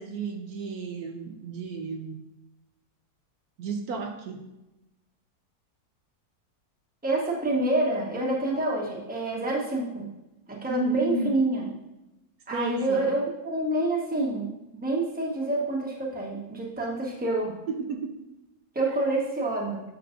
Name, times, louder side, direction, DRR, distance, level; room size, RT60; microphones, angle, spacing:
voice 1, 0.0-2.2 3.6-4.5 10.7-11.3 12.5-13.1 17.7-18.2, right 3 dB, 70° right, 4 dB, 1.1 m, -32 dB
voice 2, 7.0-10.1 10.5-11.7 12.5-14.5 14.8-17.6 18.7-19.8, right 2 dB, 5° right, -3 dB, 1.0 m, -27 dB
7.7 x 6.1 x 2.5 m, 0.95 s
omnidirectional pair, 1.7 m